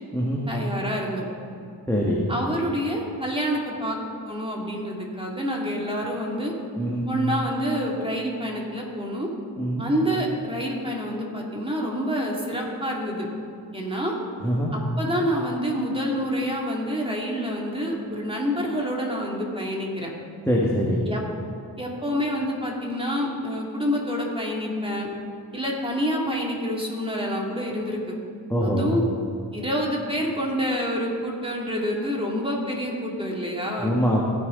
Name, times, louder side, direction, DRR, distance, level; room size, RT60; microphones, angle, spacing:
voice 1, 0.5-1.3 2.3-4.0 4.3-6.5 7.1-9.3 9.8-13.3 13.7-14.2 14.7-20.1 21.1-21.2 21.8-25.1 25.5-28.2 28.6-29.0 29.5-33.9, equal, 10° right, -2 dB, 2.5 m, -27 dB
voice 2, 1.9-2.2 6.8-7.0 9.6-9.8 14.4-14.7 20.5-21.0 28.5-28.9 33.8-34.2, equal, 5° left, -4 dB, 1.8 m, -23 dB
17.5 x 6.2 x 3.9 m, 2.4 s
cardioid pair, 45°, 44 cm